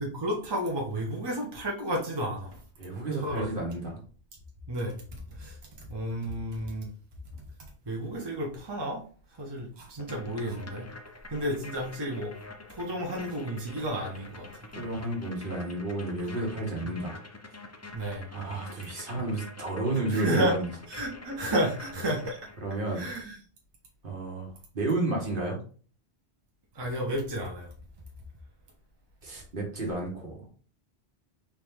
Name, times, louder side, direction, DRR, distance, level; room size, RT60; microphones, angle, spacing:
voice 1, 0.0-2.6 2.9-3.6 4.7-6.9 7.8-9.0 9.4-10.9 11.3-12.3 12.7-14.5 16.8-16.9 17.9-18.3 20.1-20.5 20.9-22.4 22.9-23.4 26.7-27.7, right 1 dB, 25° right, -1 dB, 0.9 m, -32 dB
voice 2, 2.8-4.0 14.7-17.2 18.3-20.7 22.6-23.1 24.0-25.6 29.2-30.5, right 2 dB, 55° right, 0 dB, 1.4 m, -31 dB
sound 1, 10.0-22.8, left 2 dB, 25° left, 0.3 m, -46 dB
4.6 x 2.9 x 3.6 m, 0.42 s
omnidirectional pair, 1.1 m